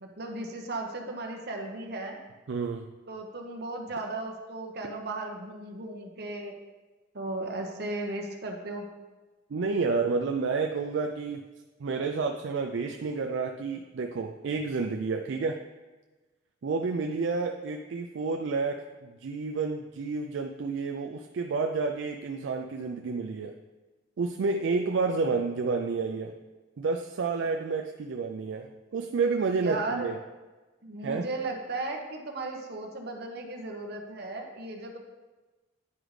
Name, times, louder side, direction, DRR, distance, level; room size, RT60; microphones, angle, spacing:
voice 1, 0.0-2.2 3.1-6.5 7.1-8.9 29.5-30.1 30.8-35.0, right 2 dB, 55° right, 2 dB, 0.9 m, -36 dB
voice 2, 2.5-2.9 9.5-11.4 11.8-15.6 16.6-23.6 24.2-26.3 26.8-30.2 31.0-31.3, right 4 dB, 70° right, 3 dB, 0.4 m, -30 dB
9.6 x 5.0 x 3.2 m, 1.2 s
head